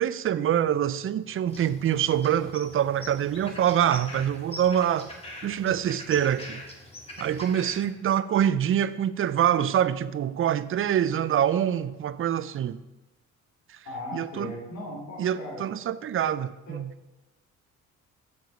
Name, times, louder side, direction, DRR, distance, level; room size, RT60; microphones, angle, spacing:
voice 1, 0.0-5.1 5.4-6.6 7.2-12.8 13.7-13.8 14.1-14.5 15.2-16.9, right 10 dB, 45° right, 0.5 m, -25 dB
sound 1, 1.5-7.9, left 1 dB, 20° left, 1.9 m, -43 dB
voice 2, 13.8-15.6 16.2-16.3 16.7-16.8, left 2 dB, 65° left, 2.8 m, -38 dB
7.1 x 6.3 x 5.4 m
cardioid pair, 90°, 30 cm